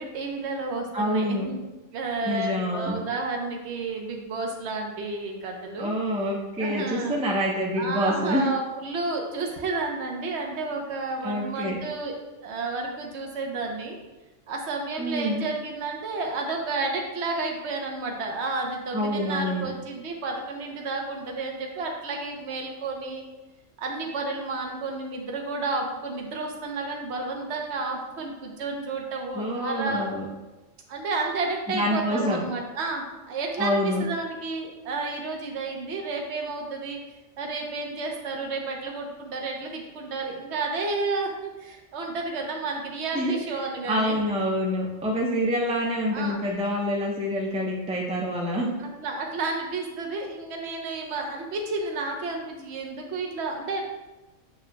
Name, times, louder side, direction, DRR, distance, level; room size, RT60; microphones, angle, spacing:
voice 1, 0.0-1.6 1.9-5.9 6.6-7.2 7.8-12.1 12.4-14.0 14.5-23.2 23.8-30.1 30.9-37.0 37.4-44.2 46.1-46.4 48.8-53.8, right 3 dB, 65° right, 1 dB, 1.1 m, -31 dB
voice 2, 0.9-1.5 2.2-3.0 5.8-8.5 11.2-11.8 15.0-15.4 18.9-19.7 29.3-30.3 31.7-32.4 33.6-34.0 43.1-43.4 43.9-48.7, equal, 5° right, -3 dB, 0.8 m, -26 dB
7.5 x 6.0 x 2.3 m, 1.1 s
omnidirectional pair, 1.3 m